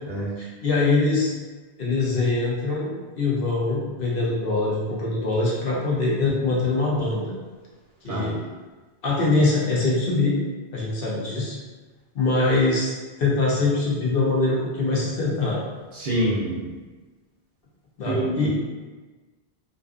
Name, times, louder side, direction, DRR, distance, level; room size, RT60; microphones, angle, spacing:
voice 1, 0.4-1.3 1.8-7.3 8.0-8.4 9.0-10.4 10.7-11.6 12.1-12.9 13.2-15.6 18.0-18.5, left 3 dB, 65° left, -5 dB, 0.8 m, -23 dB
voice 2, 15.9-16.7 18.0-18.5, right 1 dB, 60° right, -5 dB, 0.7 m, -26 dB
2.5 x 2.3 x 2.3 m, 1.3 s
omnidirectional pair, 1.1 m